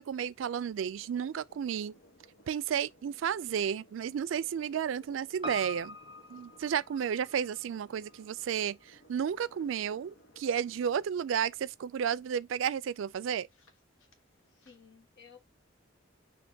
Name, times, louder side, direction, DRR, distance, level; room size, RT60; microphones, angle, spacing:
voice 1, 0.0-1.9 2.5-6.0 6.3-13.5, right 8 dB, 70° right, 0.3 m, -32 dB
sound 1, 0.9-14.8, equal, 85° left, 1.1 m, -61 dB
Piano, 5.4-9.9 10.2-10.3, left 2 dB, 25° right, 0.8 m, -46 dB
voice 2, 14.5-15.4, left 6 dB, 60° left, 1.6 m, -56 dB
6.3 x 2.9 x 2.7 m
head